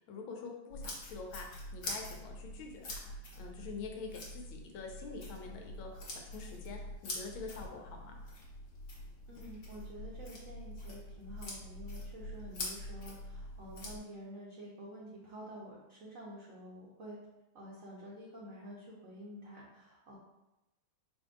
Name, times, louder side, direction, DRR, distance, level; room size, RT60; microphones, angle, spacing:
voice 1, 0.1-1.5 1.7-3.1 3.4-8.1, left 4 dB, 85° left, 1 dB, 1.6 m, -46 dB
sound 1, 0.7-14.0, left 1 dB, 45° left, 1.2 m, -45 dB
voice 2, 9.3-17.2 17.5-20.2, equal, 55° right, -5 dB, 1.0 m, -49 dB
5.1 x 2.6 x 3.7 m, 0.96 s
omnidirectional pair, 2.2 m